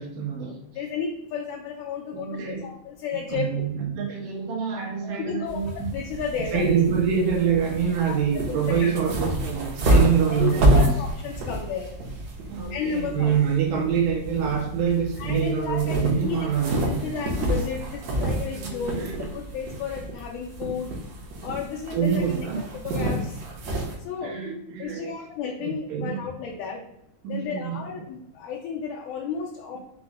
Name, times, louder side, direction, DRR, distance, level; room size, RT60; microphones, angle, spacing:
voice 1, 0.0-0.6 2.1-2.7 3.3-5.9 6.5-11.0 12.5-17.1 18.6-19.1 21.9-22.6 24.2-25.2 25.6-26.2 27.2-27.8, right 7 dB, 90° right, 0 dB, 2.4 m, -26 dB
voice 2, 0.7-3.7 5.0-5.6 5.9-6.7 8.1-8.9 9.9-10.0 10.3-11.9 12.7-13.3 15.2-16.0 16.2-16.5 17.0-20.9 21.4-22.2 22.8-23.4 24.0-24.4 24.8-26.8 27.3-29.8, left 6 dB, 80° left, -3 dB, 1.8 m, -32 dB
sound 1, 5.5-24.0, right 1 dB, 75° right, 1.7 m, -28 dB
5.7 x 2.0 x 3.5 m, 0.77 s
omnidirectional pair, 3.9 m